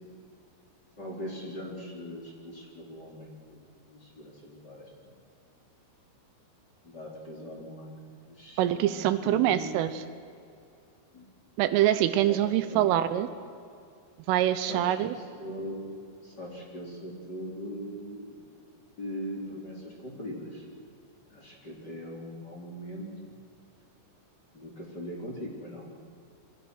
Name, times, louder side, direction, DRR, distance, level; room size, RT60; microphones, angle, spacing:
voice 1, 1.0-3.6 3.9-5.1 6.8-10.1 11.1-11.3 12.2-12.9 14.7-16.0 16.2-18.5 19.0-20.7 21.3-23.4 24.5-25.9, equal, 20° left, -2 dB, 3.7 m, -40 dB
voice 2, 8.6-9.9 11.6-13.3 14.3-15.1, right 12 dB, 80° right, 12 dB, 3.4 m, -24 dB
28.0 x 23.5 x 6.3 m, 2.4 s
omnidirectional pair, 5.9 m